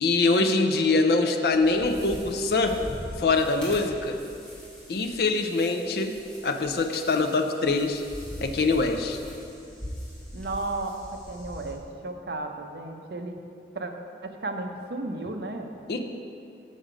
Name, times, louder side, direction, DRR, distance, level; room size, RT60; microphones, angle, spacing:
voice 1, 0.0-2.8 3.2-4.2 4.9-6.1 6.4-8.0 8.4-9.2 15.9-16.2, left 3 dB, 60° left, 5 dB, 0.5 m, -24 dB
sound 1, 1.5-11.7, equal, 5° left, 1.8 m, -42 dB
voice 2, 10.3-11.0 11.3-13.4 13.7-13.9 14.2-15.7, right 2 dB, 60° right, 4 dB, 0.6 m, -34 dB
6.7 x 6.4 x 4.9 m, 2.5 s
head